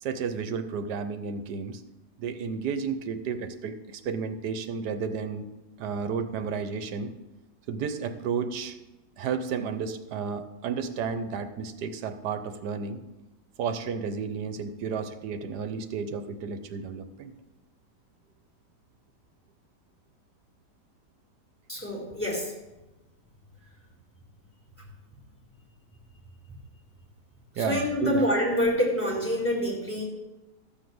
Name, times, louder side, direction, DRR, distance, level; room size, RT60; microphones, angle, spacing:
voice 1, 0.0-1.8 2.2-5.5 5.8-7.1 7.7-8.8 9.2-13.0 13.6-17.3 27.6-28.2, right 6 dB, 70° right, 10 dB, 1.3 m, -32 dB
voice 2, 21.7-22.5 27.6-30.0, equal, 5° left, -6 dB, 3.7 m, -26 dB
13.0 x 4.4 x 7.8 m, 1.1 s
omnidirectional pair, 1.9 m